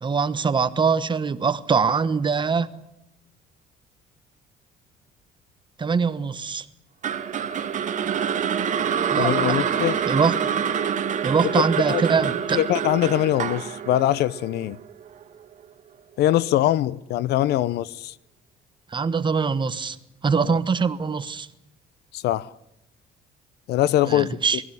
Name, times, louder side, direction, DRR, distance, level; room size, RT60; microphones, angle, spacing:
voice 1, 0.0-2.7 5.8-6.7 9.1-9.3 10.1-10.3 11.2-12.6 18.9-20.0 20.2-21.5 24.1-24.6, right 5 dB, 30° right, 1.2 m, -23 dB
sound 1, 7.0-15.2, right 8 dB, 45° right, 2.1 m, -26 dB
voice 2, 9.2-10.0 11.5-12.0 12.5-14.8 16.2-18.1 20.4-20.6 22.1-22.5 23.7-24.4, left 13 dB, 75° left, 0.8 m, -22 dB
20.5 x 15.5 x 9.9 m
cardioid pair, 110°, 17 cm